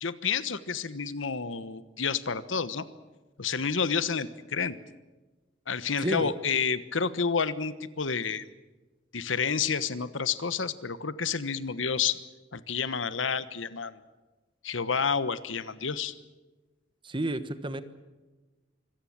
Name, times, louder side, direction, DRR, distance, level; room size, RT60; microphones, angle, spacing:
voice 1, 0.0-2.9 3.4-4.8 5.7-8.4 9.1-12.2 12.5-14.0 14.6-16.1, left 6 dB, 90° left, 14 dB, 1.2 m, -29 dB
voice 2, 6.0-6.3 17.0-17.8, right 1 dB, 25° right, 12 dB, 1.3 m, -31 dB
25.5 x 17.0 x 8.7 m, 1.2 s
head